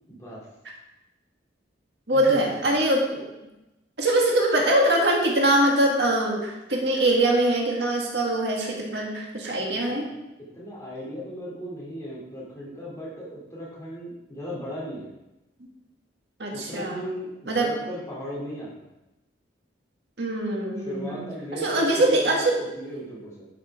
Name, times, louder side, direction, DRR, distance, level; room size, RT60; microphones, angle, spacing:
voice 1, 0.1-0.5 2.1-2.7 9.6-10.2 10.5-15.1 16.5-18.9 20.8-23.5, equal, 15° left, -6 dB, 2.6 m, -37 dB
voice 2, 2.1-3.2 4.0-10.1 16.4-17.0 17.5-17.8 20.2-21.2 21.6-22.6, right 1 dB, 65° right, -1 dB, 1.9 m, -23 dB
11.5 x 5.9 x 4.8 m, 0.96 s
head